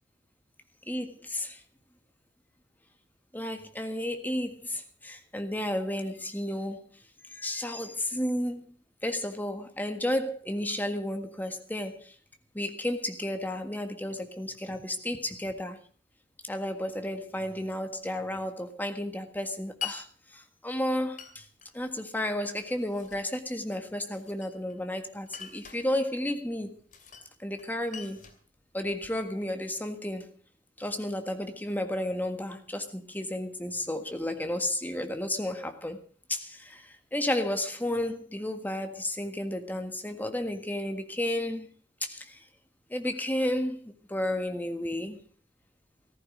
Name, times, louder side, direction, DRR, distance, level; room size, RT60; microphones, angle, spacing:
voice 1, 0.9-1.6 3.3-6.9 7.3-8.6 9.0-12.1 12.5-15.8 16.5-20.1 20.3-21.4 21.7-26.8 27.4-28.3 28.7-30.3 30.8-36.0 36.3-41.7 42.0-42.4 42.9-43.8 44.1-45.2, left 1 dB, 10° left, 1.6 m, -32 dB
Glass, 19.8-20.0 21.2-21.7 22.6-23.3 24.1-24.8 25.3-25.8 26.9-27.3 27.6-29.2, left 7 dB, 45° left, 2.7 m, -42 dB
15.0 x 14.5 x 5.0 m
head